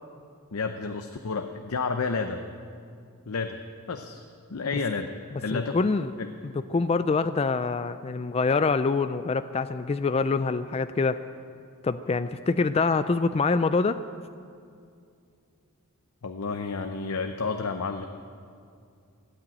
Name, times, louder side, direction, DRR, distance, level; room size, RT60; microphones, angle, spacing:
voice 1, 0.5-2.4 3.3-3.6 3.9-4.2 4.5-5.1 5.4-5.8 6.2-6.3 16.2-18.1, left 4 dB, 75° left, 6 dB, 0.7 m, -30 dB
voice 2, 5.5-6.1 6.7-11.2 11.8-14.0, left 4 dB, 30° left, 11 dB, 0.3 m, -25 dB
17.0 x 8.9 x 9.2 m, 2.3 s
head